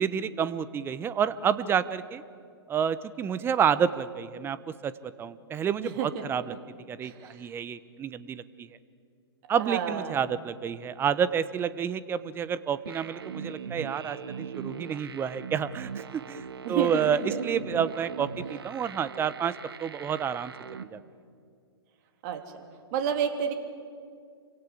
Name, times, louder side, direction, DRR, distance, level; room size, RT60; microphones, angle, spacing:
voice 1, 0.0-2.2 2.7-4.6 4.8-6.5 6.9-8.7 9.5-19.5 19.8-20.5 20.9-21.0, right 8 dB, 15° right, 16 dB, 0.9 m, -29 dB
voice 2, 5.8-6.6 7.0-7.5 9.6-10.3 16.6-17.4 22.2-22.6 22.9-23.5, right 7 dB, 40° right, 6 dB, 3.1 m, -31 dB
sound 1, 12.9-20.8, right 6 dB, 65° right, 1.5 m, -40 dB
28.5 x 25.0 x 8.4 m, 2.2 s
figure-of-eight pair, 120°, 14 cm